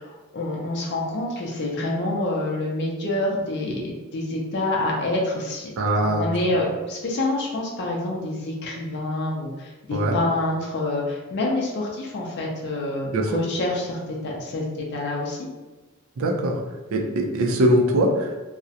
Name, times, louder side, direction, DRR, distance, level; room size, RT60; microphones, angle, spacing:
voice 1, 0.0-15.5, left 2 dB, 55° left, -2 dB, 0.4 m, -27 dB
voice 2, 5.8-6.3 9.9-10.2 13.1-13.4 16.2-16.6 16.9-18.4, right 1 dB, 75° right, 1 dB, 0.4 m, -21 dB
2.4 x 2.0 x 2.7 m, 1.2 s
head